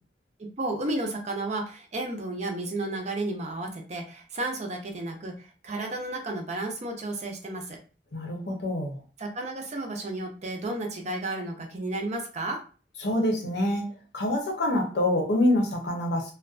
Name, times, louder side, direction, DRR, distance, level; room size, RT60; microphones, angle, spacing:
voice 1, 0.4-7.8 9.2-12.6, right 2 dB, 40° right, 2 dB, 0.5 m, -32 dB
voice 2, 8.1-9.0 13.0-13.9 14.1-16.3, left 1 dB, 70° left, 1 dB, 0.7 m, -26 dB
2.5 x 2.2 x 2.4 m, 0.36 s
head